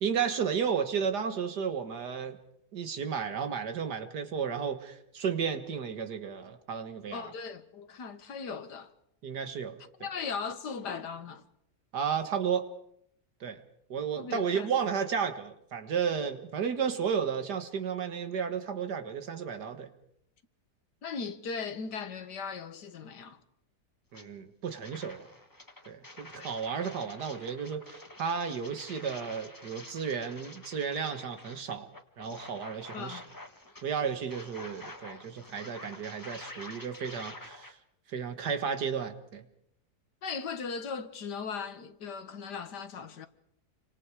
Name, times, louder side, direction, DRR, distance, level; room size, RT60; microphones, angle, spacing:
voice 1, 0.0-2.4 2.7-7.3 9.2-9.8 11.9-12.7 13.4-13.6 13.9-19.9 24.1-25.3 25.9-31.9 32.2-33.2 33.8-37.8 38.1-39.4, right 7 dB, 75° right, 2.2 m, -33 dB
voice 2, 7.1-8.9 10.0-11.5 14.1-14.7 21.0-23.4 26.4-26.5 32.9-33.3 40.2-43.3, left 5 dB, 80° left, 2.0 m, -38 dB
sound 1, 24.1-24.3 24.7-37.7, left 1 dB, 15° left, 1.4 m, -48 dB
28.5 x 25.0 x 4.9 m
omnidirectional pair, 1.8 m